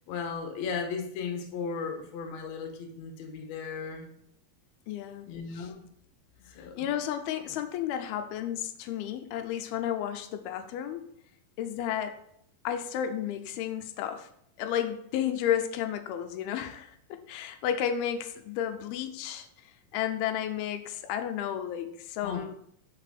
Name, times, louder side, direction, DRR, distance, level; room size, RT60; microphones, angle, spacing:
voice 1, 0.1-4.1 5.3-5.9 6.6-6.9 22.2-22.5, left 5 dB, 60° left, 4 dB, 2.0 m, -36 dB
voice 2, 4.9-5.3 5.5-5.7 6.8-11.1 11.6-12.2 12.6-14.3 14.6-19.5 19.9-22.5, left 10 dB, 90° left, 8 dB, 2.6 m, -32 dB
5.8 x 5.5 x 6.4 m, 0.71 s
omnidirectional pair, 4.4 m